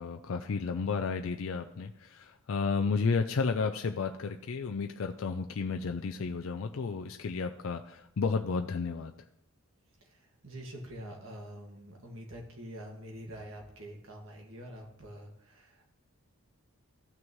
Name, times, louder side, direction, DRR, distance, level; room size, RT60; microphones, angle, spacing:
voice 1, 0.0-9.1, left 4 dB, 70° left, 5 dB, 0.4 m, -32 dB
voice 2, 10.0-15.8, equal, 70° right, 0 dB, 1.9 m, -46 dB
14.5 x 6.2 x 3.1 m, 0.78 s
head